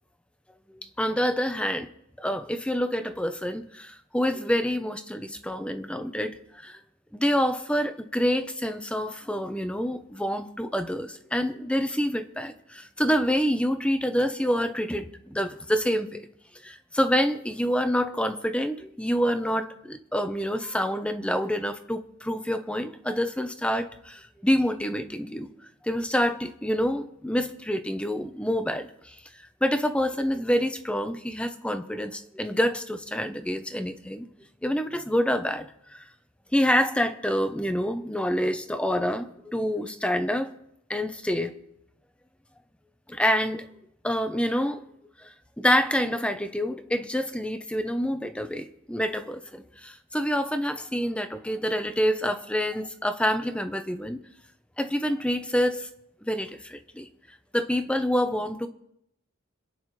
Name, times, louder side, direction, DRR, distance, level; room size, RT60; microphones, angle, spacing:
voice 1, 1.0-1.9 2.2-6.8 7.1-16.3 16.6-25.5 25.8-29.1 29.6-34.3 34.6-35.7 35.9-36.0 36.5-40.5 40.9-41.5 43.1-43.7 44.0-44.8 45.2-45.3 45.6-54.2 54.8-55.9 56.2-57.1 57.5-58.7, equal, 5° left, 9 dB, 0.8 m, -27 dB
26.5 x 9.6 x 3.3 m, 0.77 s
head